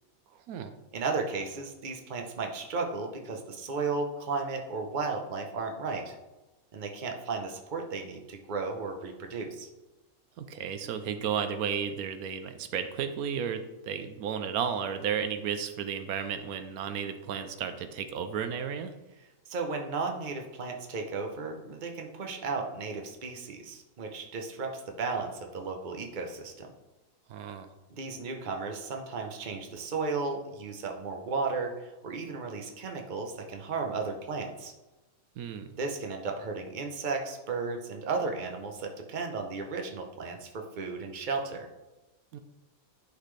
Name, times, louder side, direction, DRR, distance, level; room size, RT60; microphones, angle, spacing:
voice 1, 0.9-6.1 6.7-9.7 19.5-26.7 27.9-34.7 35.8-41.7, right 4 dB, 40° right, 3 dB, 0.9 m, -34 dB
voice 2, 10.4-18.9 27.3-27.7 35.4-35.7 42.3-42.4, right 7 dB, 85° right, 9 dB, 1.1 m, -33 dB
11.5 x 4.2 x 3.2 m, 1.1 s
omnidirectional pair, 1.5 m